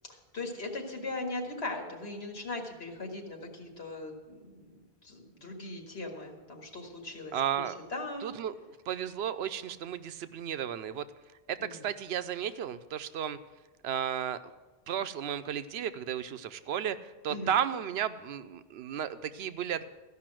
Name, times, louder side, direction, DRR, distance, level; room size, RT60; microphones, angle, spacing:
voice 1, 0.1-7.7 7.9-8.3 11.6-11.8 17.3-17.5, left 2 dB, 85° left, 2 dB, 2.0 m, -39 dB
voice 2, 7.3-7.8 8.2-8.5 8.9-11.1 11.5-13.4 13.8-14.4 14.9-19.8, right 9 dB, 90° right, 12 dB, 0.9 m, -33 dB
14.5 x 5.6 x 7.5 m, 1.2 s
omnidirectional pair, 1.0 m